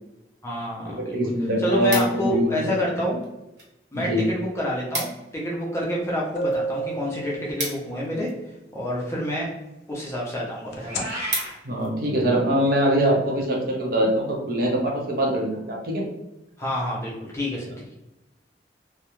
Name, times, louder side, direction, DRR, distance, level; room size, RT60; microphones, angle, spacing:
voice 1, 0.4-1.1 1.6-3.2 3.9-8.3 8.7-9.5 9.9-11.1 16.6-17.7, equal, 15° left, -4 dB, 0.5 m, -28 dB
voice 2, 1.0-2.7 3.9-4.2 11.6-16.0, equal, 55° right, -1 dB, 0.6 m, -23 dB
sound 1, 1.5-2.5 3.2-3.7 4.0-4.1 4.4-4.5 4.7-5.3 5.7-8.5 9.3-9.6 10.1-10.2 10.5-10.6 10.9-11.9 12.4-12.6, right 2 dB, 85° right, 0.9 m, -34 dB
sound 2, 5.8-5.9 6.4-8.1 10.7-11.0, right 2 dB, 70° left, 0.4 m, -30 dB
Meow, 10.8-11.5, equal, 40° right, 1.1 m, -33 dB
2.3 x 2.0 x 2.9 m, 0.95 s
head